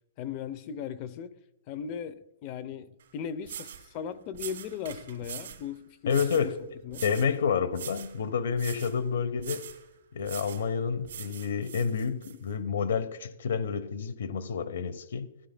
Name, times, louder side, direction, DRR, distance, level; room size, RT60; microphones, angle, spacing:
voice 1, 0.2-1.4 1.7-6.5 6.8-7.0, left 8 dB, 30° left, 0.6 m, -38 dB
sound 1, 3.0-3.1 3.4-3.9 4.3-5.6 6.1-6.5 6.9-7.4 7.7-8.2 8.6-9.0 9.4-9.8 10.2-10.7 11.0-12.3, right 9 dB, 60° right, 2.4 m, -42 dB
voice 2, 6.1-6.6 7.0-9.7 10.1-15.3, left 6 dB, 75° left, 0.8 m, -29 dB
15.5 x 11.5 x 2.2 m
hypercardioid pair, 165°, 0 cm